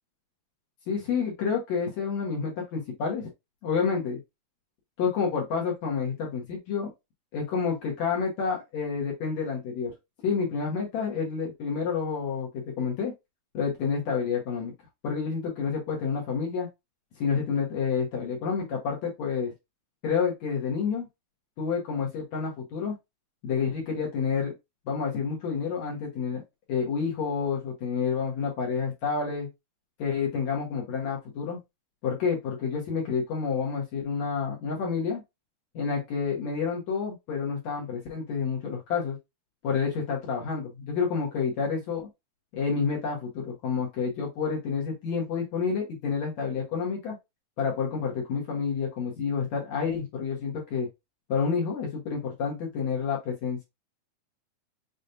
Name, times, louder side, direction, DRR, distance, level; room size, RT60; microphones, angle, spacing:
voice 1, 0.9-3.3 3.6-4.2 5.0-6.9 7.3-9.9 10.2-12.5 12.8-13.1 13.5-14.7 15.0-16.7 17.2-19.5 20.0-21.1 21.6-22.9 23.4-24.5 24.9-26.4 26.7-29.5 30.0-31.6 32.0-35.2 35.7-39.2 39.6-42.1 42.5-47.1 47.6-50.9 51.3-53.6, left 6 dB, 60° left, -1 dB, 2.2 m, -29 dB
6.7 x 3.1 x 2.6 m, 0.21 s
omnidirectional pair, 4.4 m